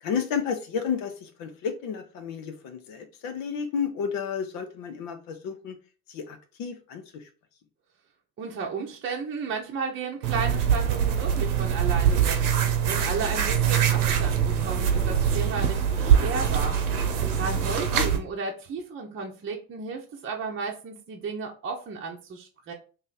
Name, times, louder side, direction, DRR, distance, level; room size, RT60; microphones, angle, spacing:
voice 1, 0.0-5.8 6.1-7.3 17.9-18.1, left 6 dB, 50° left, 6 dB, 0.7 m, -32 dB
voice 2, 8.4-12.4 12.9-16.8 17.4-22.7, right 4 dB, 30° right, 0 dB, 0.8 m, -33 dB
sound 1, 10.2-18.2, right 8 dB, 80° right, 0.9 m, -23 dB
3.1 x 2.7 x 3.9 m, 0.36 s
figure-of-eight pair, 65°, 44 cm